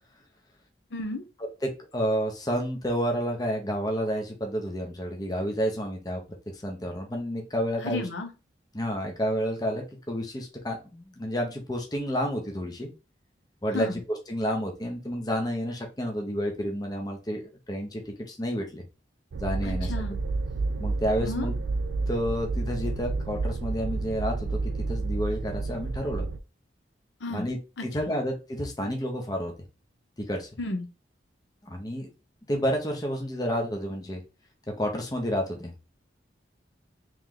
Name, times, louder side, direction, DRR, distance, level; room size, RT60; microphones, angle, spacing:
voice 1, 0.9-1.2 7.8-8.3 13.7-14.0 19.6-20.2 21.2-21.5 27.2-27.5 27.8-27.9 30.6-30.9, left 2 dB, 80° left, 5 dB, 0.8 m, -33 dB
voice 2, 1.6-6.2 6.6-8.0 8.7-12.9 13.6-14.0 14.3-18.8 19.4-19.9 20.8-21.5 22.1-24.6 24.9-26.3 27.3-29.5 30.2-30.5 31.6-32.1 32.5-34.2 34.7-35.7, equal, 20° left, 2 dB, 0.7 m, -30 dB
sound 1, 19.3-26.4, right 3 dB, 80° right, 0.4 m, -30 dB
3.1 x 3.1 x 3.7 m, 0.30 s
head